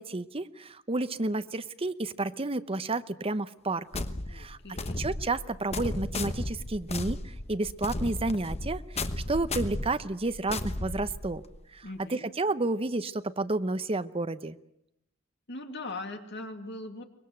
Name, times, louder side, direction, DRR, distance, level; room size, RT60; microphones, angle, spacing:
voice 1, 0.0-4.0 4.3-4.6 5.0-11.4 11.7-11.8 12.1-14.6, right 2 dB, 30° right, 12 dB, 0.8 m, -31 dB
sound 1, 3.9-11.6, left 2 dB, 30° left, 1.1 m, -34 dB
voice 2, 4.3-5.0 11.8-12.3 15.5-17.0, left 2 dB, 55° left, 6 dB, 2.5 m, -40 dB
24.0 x 21.0 x 8.0 m, 0.80 s
head